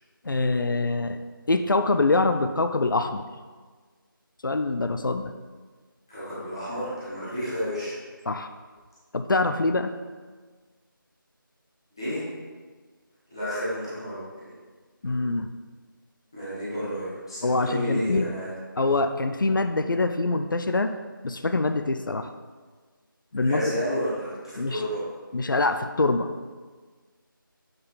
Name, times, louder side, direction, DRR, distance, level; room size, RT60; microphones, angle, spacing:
voice 1, 0.2-1.2 1.5-3.2 4.4-5.3 8.3-8.5 9.1-9.9 15.0-15.5 17.4-18.3 18.8-20.9 21.2-22.3 23.3-23.7 24.6-24.8 25.3-26.3, left 3 dB, 65° left, 9 dB, 0.4 m, -24 dB
voice 2, 6.1-8.0 12.0-12.2 13.3-14.2 16.3-18.5 23.3-25.0, equal, 10° left, -14 dB, 1.1 m, -31 dB
7.9 x 3.8 x 4.0 m, 1.4 s
figure-of-eight pair, 180°, 12 cm